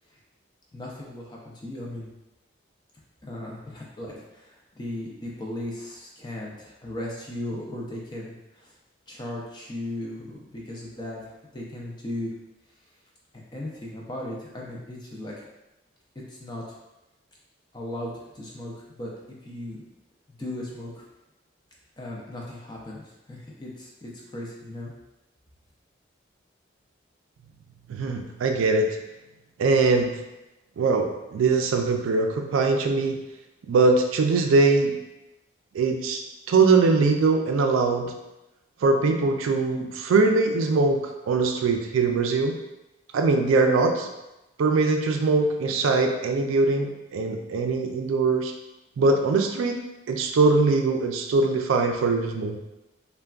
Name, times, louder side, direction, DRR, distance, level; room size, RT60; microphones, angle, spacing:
voice 1, 0.7-2.1 3.2-8.7 9.1-12.3 13.5-15.3 16.3-16.7 17.7-19.1 19.4-19.8 20.3-21.0 22.0-24.9, left 1 dB, 20° left, -3 dB, 0.4 m, -37 dB
voice 2, 27.9-29.0 29.6-30.2 30.8-33.2 33.7-34.9 35.7-36.2 36.5-38.1 38.8-42.6 43.1-44.1 44.6-48.5 49.0-49.8 50.1-52.6, right 3 dB, 85° right, 5 dB, 0.3 m, -22 dB
3.4 x 2.2 x 2.3 m, 0.97 s
head